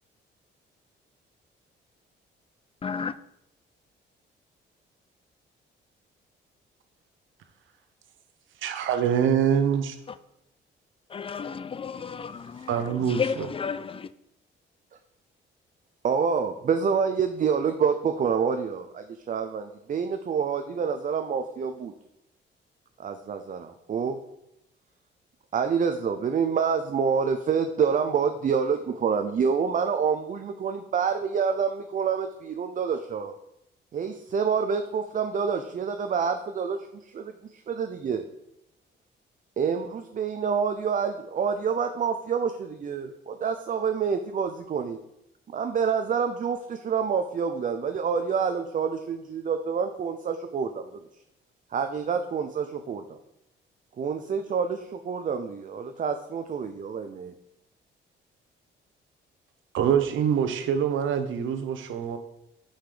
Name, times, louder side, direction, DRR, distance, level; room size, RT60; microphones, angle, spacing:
voice 1, 2.8-3.2 10.1-10.2 11.1-14.1, left 6 dB, 30° left, 0.3 m, -32 dB
voice 2, 8.6-10.0 12.7-13.2 59.7-62.2, right 8 dB, 75° right, 0.9 m, -24 dB
voice 3, 16.0-21.9 23.0-24.2 25.5-33.4 33.9-36.8 37.1-38.3 39.6-45.0 45.5-50.9 51.7-53.2 54.0-57.3, right 6 dB, 40° right, 0.5 m, -27 dB
5.7 x 5.7 x 5.0 m
cardioid pair, 90°, 20 cm